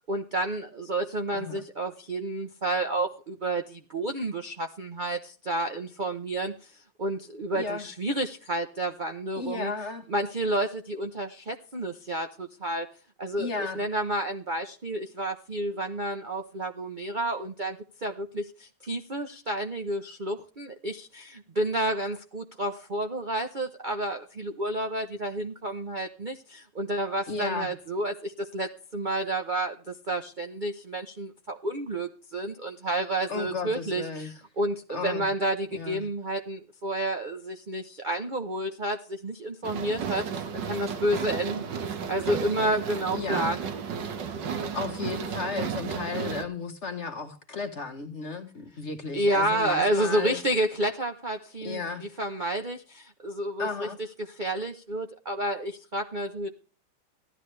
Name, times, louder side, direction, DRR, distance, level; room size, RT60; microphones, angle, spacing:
voice 1, 0.1-6.7 7.0-9.7 10.1-12.9 13.2-43.6 49.1-53.9 54.3-56.5, right 1 dB, 45° right, 0.6 m, -30 dB
voice 2, 1.3-1.6 7.5-7.9 9.4-10.0 13.4-13.8 27.3-27.7 33.3-34.3 34.9-35.3 35.7-36.0 43.1-43.5 44.7-50.4 51.6-52.0 53.6-54.0, left 4 dB, 40° left, 1.4 m, -34 dB
sound 1, 39.6-46.4, right 6 dB, 65° right, 1.8 m, -33 dB
15.5 x 11.5 x 3.3 m
omnidirectional pair, 2.2 m